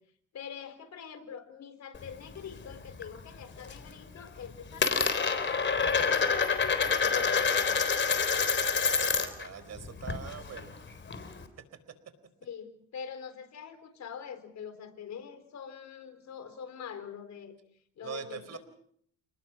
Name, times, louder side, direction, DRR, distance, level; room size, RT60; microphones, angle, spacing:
voice 1, 0.3-8.0 12.4-17.6 18.0-18.6, left 7 dB, 65° left, 10 dB, 4.2 m, -44 dB
Coin (dropping), 1.9-3.1 3.4-3.9 4.2-9.5 9.8-11.4, left 5 dB, 40° left, 3.8 m, -28 dB
voice 2, 9.0-10.7 18.0-18.6, right 7 dB, 60° right, 12 dB, 4.3 m, -43 dB
29.5 x 19.5 x 6.1 m, 0.65 s
cardioid pair, 90°, 30 cm